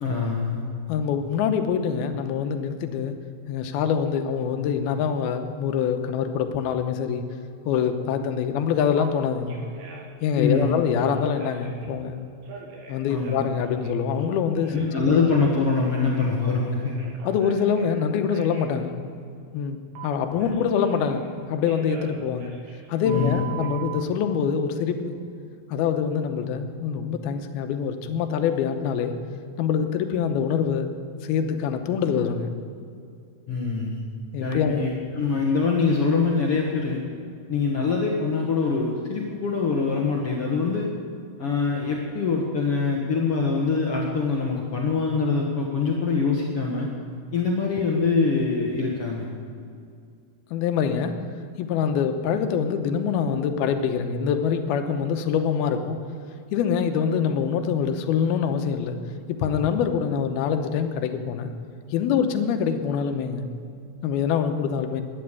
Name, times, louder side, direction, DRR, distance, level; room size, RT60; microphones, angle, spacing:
voice 1, 0.0-0.6 10.3-10.8 13.1-13.5 14.7-17.0 23.0-23.4 33.5-34.0 34.4-37.0 37.5-40.9 41.4-46.9 47.3-49.3, left 4 dB, 60° left, -2 dB, 1.6 m, -24 dB
voice 2, 0.9-3.1 3.5-7.2 7.7-9.5 10.2-12.2 12.9-14.8 15.1-15.2 17.2-19.0 19.5-19.8 20.0-21.2 21.5-22.5 22.9-25.1 25.7-29.1 29.6-30.9 31.2-32.5 34.3-34.9 50.5-51.1 51.6-56.0 56.5-59.0 59.3-61.5 61.9-63.4 64.0-65.0, left 7 dB, 85° left, 7 dB, 2.8 m, -25 dB
Telephone, 8.9-9.1 9.5-10.1 10.5-11.9 12.4-14.9 15.2-17.9 18.3-18.7 20.0-21.3 21.7-24.0, right 6 dB, 80° right, 3.9 m, -41 dB
12.5 x 10.5 x 8.2 m, 2.4 s
omnidirectional pair, 4.4 m